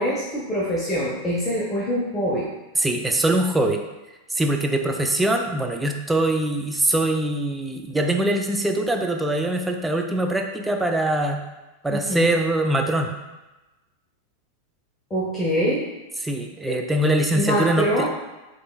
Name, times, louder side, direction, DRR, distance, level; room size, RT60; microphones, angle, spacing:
voice 1, 0.0-2.5 5.2-5.3 11.9-12.3 15.1-15.9 16.7-16.8 17.4-18.1, equal, 15° left, -5 dB, 0.8 m, -24 dB
voice 2, 2.8-3.8 4.3-11.4 11.8-13.1 16.2-18.1, right 1 dB, 10° right, 3 dB, 0.5 m, -23 dB
6.7 x 3.0 x 2.3 m, 1.1 s
figure-of-eight pair, 90°, 0 cm